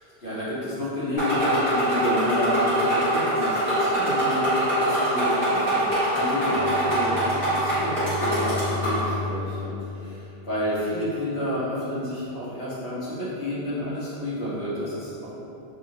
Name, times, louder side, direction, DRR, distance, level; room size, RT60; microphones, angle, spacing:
voice 1, 0.2-15.3, left 1 dB, 85° left, -11 dB, 1.3 m, -30 dB
sound 1, 1.2-9.1, right 1 dB, 55° left, 1.7 m, -24 dB
Bowed string instrument, 6.4-10.8, left 3 dB, 55° right, 0.5 m, -35 dB
3.4 x 2.4 x 2.8 m, 2.8 s
omnidirectional pair, 1.0 m